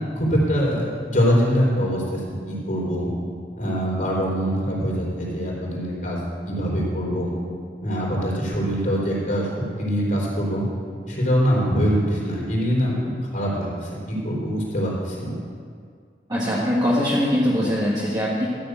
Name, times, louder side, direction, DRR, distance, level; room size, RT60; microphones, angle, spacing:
voice 1, 0.1-2.2 2.5-3.1 3.6-6.2 6.5-7.3 7.8-9.5 9.8-10.7 11.1-12.9 13.3-15.3, equal, 50° left, -4 dB, 4.1 m, -23 dB
voice 2, 16.3-18.5, equal, 25° right, -7 dB, 1.7 m, -22 dB
13.5 x 6.7 x 8.1 m, 2.1 s
head